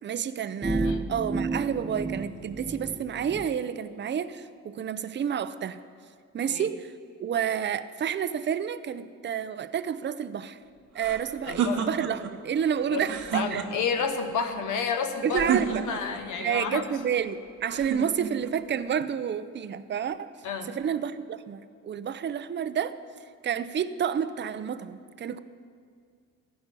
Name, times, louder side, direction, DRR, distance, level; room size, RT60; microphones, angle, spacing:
voice 1, 0.0-5.8 6.3-6.9 7.2-10.6 10.9-13.6 15.2-15.8 16.4-20.3 20.6-23.0 23.4-25.4, right 8 dB, 35° right, 13 dB, 0.6 m, -30 dB
sound 1, 0.6-3.5, right 3 dB, 15° right, 0.9 m, -31 dB
sound 2, 11.0-12.3 13.0-14.0 15.3-16.2 17.7-18.6, right 7 dB, 75° right, 1.2 m, -31 dB
voice 2, 11.5-11.9 12.9-13.0 13.3-15.5 15.9-16.9 20.4-20.7, left 6 dB, 80° left, 5 dB, 1.0 m, -30 dB
15.0 x 5.5 x 9.8 m, 2.1 s
cardioid pair, 90°, 30 cm